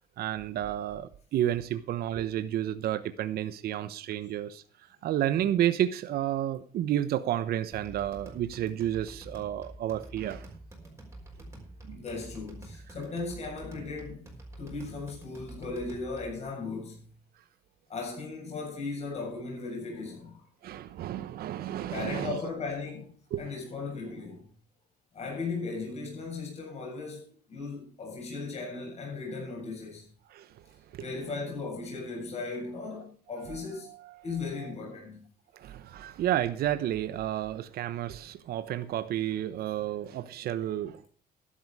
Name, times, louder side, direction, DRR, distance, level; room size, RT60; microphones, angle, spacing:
voice 1, 0.2-4.6 5.0-10.5 11.8-12.0 20.6-22.4 23.3-23.4 30.3-30.5 33.8-34.2 34.6-34.7 35.5-41.1, right 12 dB, 65° right, 1.1 m, -31 dB
sound 1, 7.7-16.4, right 1 dB, 15° right, 5.8 m, -47 dB
voice 2, 11.9-14.3 14.6-17.1 17.9-20.4 21.9-24.5 25.1-30.1 31.0-33.9 34.2-35.2, left 4 dB, 40° left, 7.6 m, -37 dB
12.5 x 11.5 x 4.9 m
cardioid pair, 110°, 17 cm